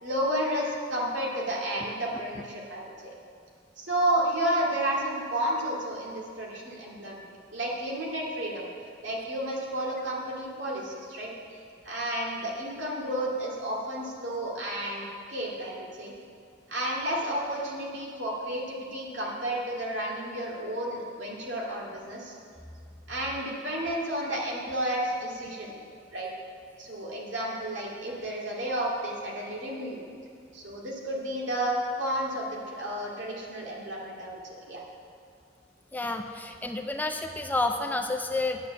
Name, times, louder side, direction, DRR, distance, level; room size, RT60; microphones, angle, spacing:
voice 1, 0.0-3.1 3.8-8.7 9.0-11.3 11.8-15.0 15.3-16.1 16.7-22.3 23.1-25.8 26.1-26.3 26.8-30.1 30.5-34.4 34.7-34.8, right 1 dB, 70° right, -3 dB, 2.4 m, -31 dB
voice 2, 35.9-38.7, left 2 dB, 10° left, 5 dB, 0.5 m, -30 dB
9.4 x 8.7 x 7.0 m, 2.3 s
head